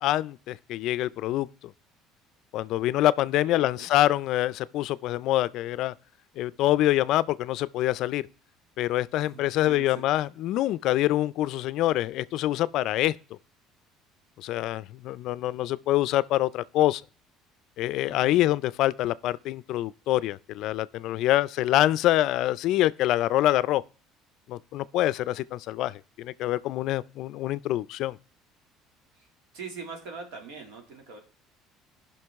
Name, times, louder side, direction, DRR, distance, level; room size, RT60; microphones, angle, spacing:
voice 1, 0.0-1.7 2.5-5.9 6.4-8.2 8.8-13.1 14.4-17.0 17.8-23.8 24.5-28.2, left 14 dB, 65° left, 0.3 m, -25 dB
voice 2, 3.4-3.9 9.3-10.0 18.0-18.4 29.1-29.3 29.5-31.2, right 5 dB, 85° right, 2.3 m, -42 dB
16.0 x 5.8 x 3.5 m
cardioid pair, 115°, 0 cm